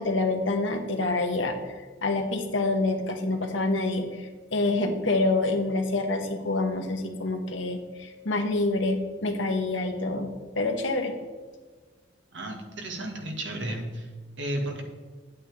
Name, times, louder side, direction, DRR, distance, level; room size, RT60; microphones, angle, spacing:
voice 1, 0.0-1.5 2.0-11.2, left 2 dB, 85° left, 4 dB, 1.3 m, -27 dB
voice 2, 12.3-14.1 14.4-14.8, right 1 dB, 75° right, 2 dB, 1.9 m, -33 dB
10.0 x 8.5 x 3.5 m, 1.4 s
head